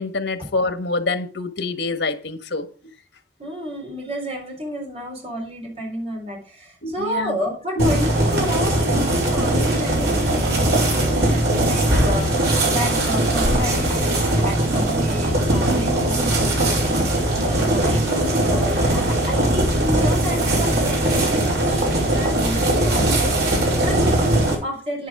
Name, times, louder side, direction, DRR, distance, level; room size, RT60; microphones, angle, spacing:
voice 1, 0.0-2.7 6.8-7.4 7.8-7.9, left 3 dB, 90° left, 1.5 m, -26 dB
voice 2, 3.4-25.1, equal, 35° right, 4.1 m, -31 dB
sound 1, 7.8-24.6, right 1 dB, 70° right, 5.2 m, -20 dB
10.0 x 9.2 x 5.0 m
head